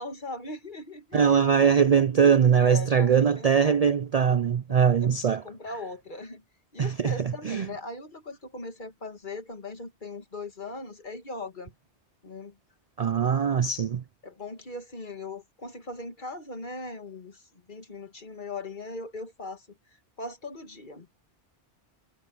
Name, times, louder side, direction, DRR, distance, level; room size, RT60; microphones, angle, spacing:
voice 1, 0.0-1.3 2.6-3.8 4.7-6.4 6.7-11.7 12.2-12.5 13.3-13.7 14.2-19.8 20.2-21.1, left 3 dB, 45° left, 2.1 m, -39 dB
voice 2, 1.1-5.4 6.8-7.7 13.0-14.0, right 7 dB, 50° right, 0.5 m, -22 dB
omnidirectional pair, 1.1 m